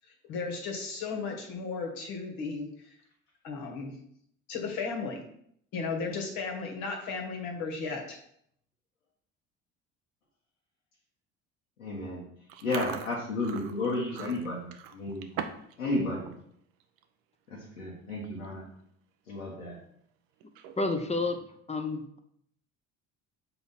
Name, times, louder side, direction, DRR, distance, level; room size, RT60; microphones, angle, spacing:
voice 1, 0.3-2.9 3.4-4.0 4.5-5.2 5.7-8.2, left 4 dB, 65° left, 1 dB, 1.7 m, -35 dB
voice 2, 11.8-12.3 12.6-15.3 15.8-16.3 17.5-18.7 19.3-19.8, left 2 dB, 85° left, -5 dB, 1.3 m, -32 dB
Chewing mastication, 12.5-15.8 16.1-16.4 16.8-17.0 17.8-17.9 18.1-18.5 18.9-19.0 20.4-21.0, right 9 dB, 60° right, 0.7 m, -41 dB
voice 3, 20.8-21.4 21.7-22.2, left 3 dB, 15° left, 6 dB, 0.9 m, -30 dB
6.7 x 4.0 x 4.2 m, 0.69 s
hypercardioid pair, 60°, 39 cm